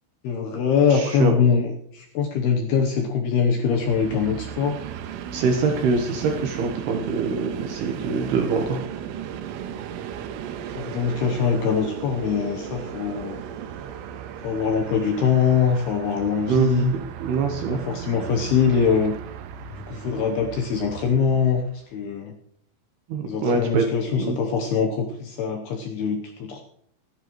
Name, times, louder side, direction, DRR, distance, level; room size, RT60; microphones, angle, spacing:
voice 1, 0.2-4.8 10.8-13.4 14.4-16.9 17.7-19.1 19.9-21.6 21.9-22.3 23.2-26.6, left 6 dB, 75° left, 2 dB, 2.5 m, -23 dB
voice 2, 0.9-1.3 5.3-8.8 16.5-17.8 23.1-23.8 24.2-24.4, right 4 dB, 70° right, 3 dB, 2.7 m, -24 dB
Train, 3.6-21.7, right 9 dB, 90° right, 3.5 m, -36 dB
25.5 x 10.5 x 3.1 m, 0.69 s
omnidirectional pair, 5.7 m